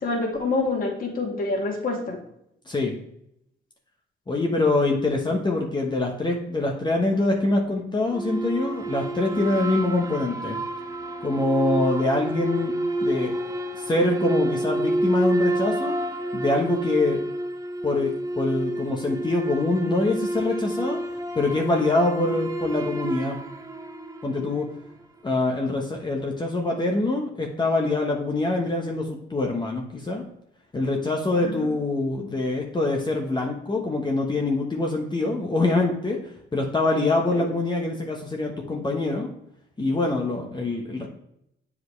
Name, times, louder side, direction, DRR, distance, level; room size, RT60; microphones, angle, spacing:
voice 1, 0.0-2.2 31.4-31.7 37.3-37.5, left 3 dB, 45° left, -1 dB, 2.3 m, -27 dB
voice 2, 4.3-10.6 11.2-12.7 13.0-13.3 13.8-15.9 16.3-17.2 17.8-18.1 18.3-21.0 21.3-23.4 24.2-24.7 25.2-30.2 30.7-36.2 36.5-39.3 39.8-41.1, left 2 dB, 20° left, 1 dB, 1.0 m, -24 dB
sound 1, 8.1-24.7, right 1 dB, 15° right, 0.6 m, -29 dB
7.7 x 4.8 x 3.2 m, 0.77 s
cardioid pair, 90°, 20 cm